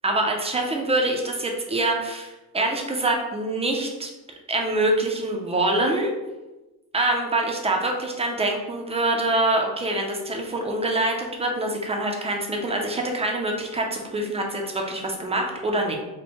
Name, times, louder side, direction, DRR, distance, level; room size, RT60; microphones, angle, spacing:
voice 1, 0.0-4.1 4.5-6.1 6.9-16.0, right 2 dB, 15° right, 1 dB, 0.5 m, -25 dB
4.4 x 2.1 x 4.3 m, 1.1 s
cardioid pair, 165°, 36 cm